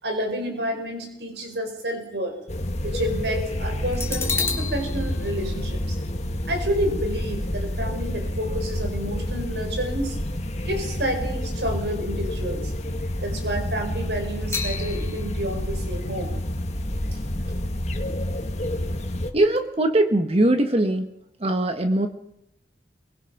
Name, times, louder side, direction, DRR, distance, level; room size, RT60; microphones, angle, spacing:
voice 1, 0.0-2.3 2.8-6.0 6.4-10.2 10.7-12.7 13.2-16.3, equal, 75° right, 4 dB, 5.6 m, -29 dB
Metal gong, 1.0-2.5 3.0-3.1 3.9-11.4 11.7-11.9 14.5-18.3 18.6-18.7, left 5 dB, 15° left, 2.7 m, -36 dB
sound 1, 2.5-19.3, left 1 dB, 40° left, 1.9 m, -29 dB
voice 2, 19.3-21.1 21.4-22.1, right 1 dB, 35° right, 7 dB, 1.3 m, -21 dB
23.5 x 20.0 x 6.0 m, 0.81 s
head